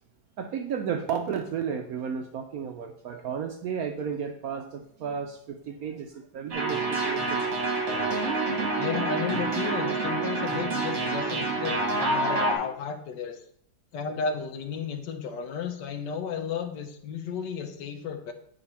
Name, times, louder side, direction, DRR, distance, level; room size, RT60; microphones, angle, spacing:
voice 1, 0.4-6.1 6.3-7.5, right 7 dB, 70° right, 6 dB, 0.9 m, -33 dB
sound 1, 6.5-12.6, right 2 dB, 50° right, 2.0 m, -27 dB
voice 2, 8.8-13.4 13.9-18.3, left 6 dB, 70° left, 6 dB, 1.5 m, -33 dB
8.0 x 5.0 x 4.3 m, 0.69 s
omnidirectional pair, 2.0 m